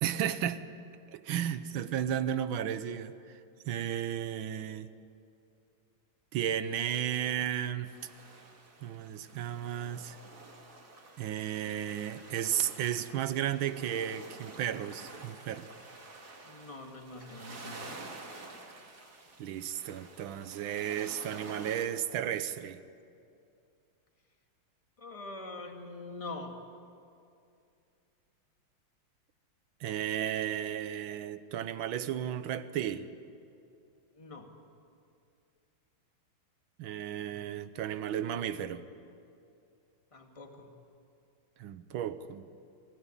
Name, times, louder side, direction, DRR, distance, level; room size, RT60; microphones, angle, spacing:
voice 1, 0.0-0.6 1.1-3.1 3.7-4.9 6.3-7.9 8.8-10.2 11.2-15.7 19.4-22.8 29.8-33.1 36.8-38.8 41.6-42.4, right 10 dB, 75° right, 13 dB, 1.6 m, -34 dB
sound 1, 7.8-21.8, right 3 dB, 50° right, 2.7 m, -49 dB
voice 2, 16.4-18.0 25.0-26.5 34.1-34.5 40.1-40.7, left 2 dB, 15° left, 3 dB, 1.9 m, -44 dB
23.5 x 16.5 x 9.9 m, 2.5 s
omnidirectional pair, 2.3 m